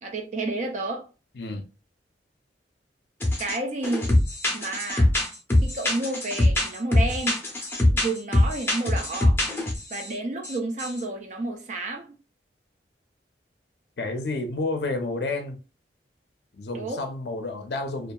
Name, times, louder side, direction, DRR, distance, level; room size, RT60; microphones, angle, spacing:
voice 1, 0.0-1.1 3.4-4.1 4.5-5.1 5.6-7.4 7.9-9.4 9.9-12.1 16.7-17.0, right 2 dB, 45° right, 0.4 m, -30 dB
sound 1, 3.2-3.6 3.8-10.1 10.4-10.5 10.8-11.0, left 1 dB, 15° left, 0.7 m, -23 dB
voice 2, 14.0-15.6 16.5-18.1, left 2 dB, 65° left, 0.5 m, -30 dB
2.7 x 2.3 x 2.2 m
head